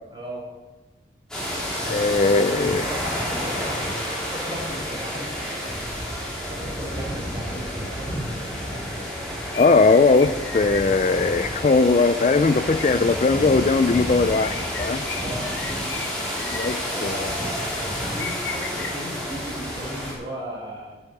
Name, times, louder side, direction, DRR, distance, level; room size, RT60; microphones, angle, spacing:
voice 1, 0.1-0.4 1.8-5.7 6.3-8.1 15.1-15.5 16.6-21.0, right 1 dB, 25° right, -3 dB, 4.6 m, -36 dB
sound 1, 1.3-20.1, equal, 5° left, 3.5 m, -30 dB
voice 2, 1.9-2.8 9.6-15.0 16.5-17.3, left 3 dB, 35° left, 11 dB, 0.3 m, -19 dB
sound 2, 9.5-19.0, left 6 dB, 70° left, 0.9 m, -39 dB
11.5 x 8.3 x 6.5 m, 1.2 s
head